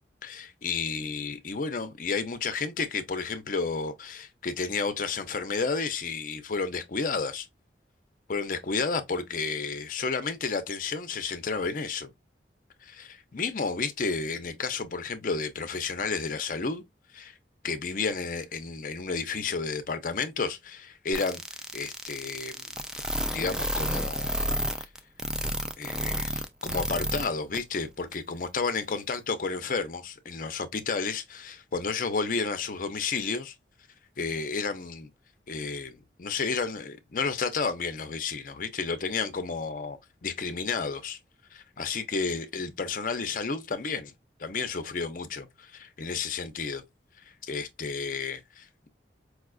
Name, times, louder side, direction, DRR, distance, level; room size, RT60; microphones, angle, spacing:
voice 1, 0.2-7.5 8.3-12.1 12.8-16.8 17.1-17.3 17.6-21.4 21.7-22.7 23.3-24.9 25.8-33.5 34.2-35.1 35.5-41.2 41.5-44.1 44.4-46.8 47.4-48.9, left 4 dB, 50° left, 0.5 m, -31 dB
sound 1, 21.1-27.3 27.5-27.6 28.1-28.2, right 1 dB, 5° right, 0.3 m, -30 dB
4.7 x 2.3 x 2.3 m
head